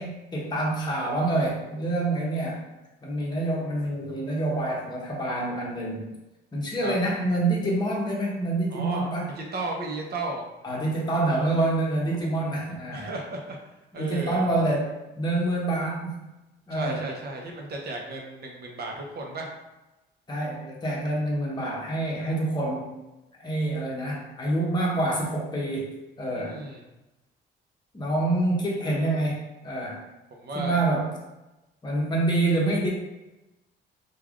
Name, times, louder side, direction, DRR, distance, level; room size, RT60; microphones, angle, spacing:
voice 1, 0.0-2.6 3.0-6.1 6.5-9.3 10.6-13.1 13.9-16.3 16.7-17.0 20.3-22.9 23.4-25.9 26.2-26.6 27.9-30.0 30.5-31.1 31.8-32.9, right 2 dB, 20° left, -4 dB, 0.8 m, -27 dB
voice 2, 6.8-7.1 8.7-10.4 12.9-13.6 13.9-14.5 16.7-19.5 26.3-26.8 30.3-30.8, right 2 dB, 55° right, 1 dB, 0.7 m, -34 dB
3.2 x 2.3 x 2.4 m, 1.0 s
cardioid pair, 90°, 20 cm